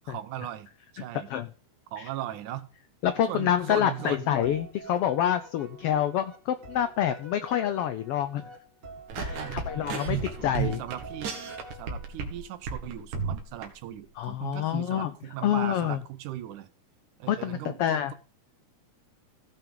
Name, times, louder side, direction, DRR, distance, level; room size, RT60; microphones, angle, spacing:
voice 1, 0.1-1.3 1.9-2.7 3.3-4.3 9.2-11.4 11.7-16.7 17.2-18.1, right 13 dB, 90° right, 13 dB, 2.4 m, -39 dB
voice 2, 3.0-8.4 9.2-10.8 14.2-15.1 15.4-16.0 17.3-18.1, left 10 dB, 85° left, 11 dB, 1.3 m, -27 dB
sound 1, 3.0-12.3, right 1 dB, 40° right, 2.7 m, -47 dB
sound 2, 9.1-12.4 12.7-13.7, right 6 dB, 75° right, 3.1 m, -33 dB
16.5 x 5.8 x 3.7 m, 0.38 s
omnidirectional pair, 3.4 m